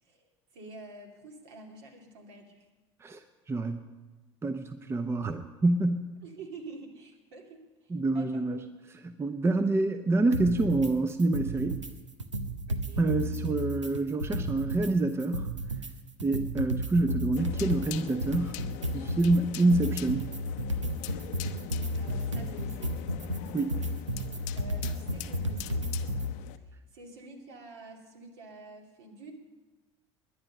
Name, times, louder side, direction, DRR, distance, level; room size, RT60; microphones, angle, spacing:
voice 1, 0.5-2.6 6.2-8.5 12.7-13.1 22.0-23.0 24.5-25.9 26.9-29.3, right 3 dB, 60° right, 2 dB, 2.6 m, -48 dB
voice 2, 3.5-3.8 4.4-6.1 7.9-11.8 13.0-15.5 16.2-18.6 18.9-20.3 23.5-23.8, right 2 dB, 15° right, 9 dB, 0.8 m, -27 dB
sound 1, 10.3-10.9 11.2-11.9 12.2-14.9 15.2-26.3, equal, 85° right, 0.8 m, -33 dB
sound 2, 17.4-26.6, left 14 dB, 50° left, 0.7 m, -43 dB
21.0 x 9.9 x 5.4 m, 1.2 s
figure-of-eight pair, 70°, 15 cm